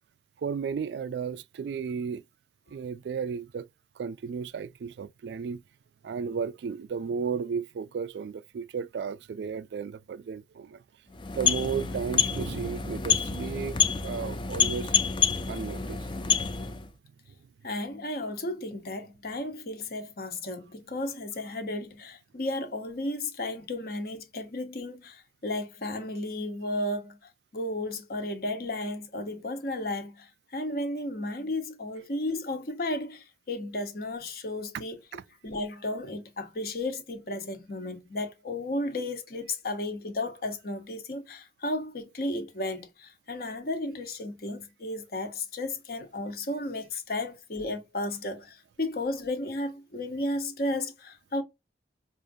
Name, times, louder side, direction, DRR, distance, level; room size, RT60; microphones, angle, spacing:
voice 1, 0.4-2.2 2.7-3.7 4.0-5.6 6.0-10.8 11.3-15.1 15.5-16.1 35.1-35.2, right 6 dB, 70° right, 0.3 m, -34 dB
sound 1, 11.1-16.9, left 7 dB, 25° left, 0.4 m, -28 dB
voice 2, 17.6-35.0 35.4-51.4, left 1 dB, 55° left, 0.9 m, -34 dB
4.9 x 2.5 x 2.6 m
head